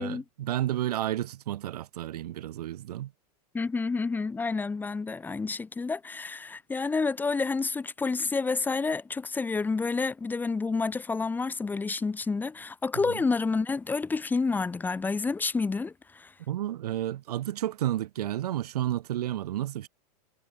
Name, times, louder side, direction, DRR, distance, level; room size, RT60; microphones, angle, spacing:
voice 1, 0.0-3.1 16.5-19.9, right 13 dB, 70° right, 5.4 m, -31 dB
voice 2, 3.5-16.3, left 4 dB, 10° left, 6.1 m, -29 dB
supercardioid pair, 155°, 20 cm